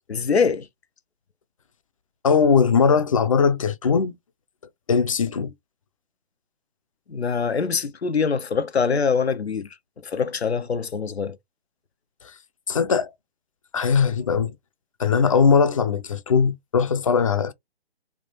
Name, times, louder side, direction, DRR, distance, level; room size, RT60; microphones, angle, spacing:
voice 1, 0.1-0.7 7.1-9.7 10.0-11.4, left 5 dB, 90° left, 0.7 m, -24 dB
voice 2, 2.2-4.2 4.9-5.5 12.7-13.1 13.7-14.5 15.0-17.5, left 6 dB, 35° left, 0.4 m, -20 dB
3.5 x 2.4 x 3.9 m
figure-of-eight pair, 140°, 31 cm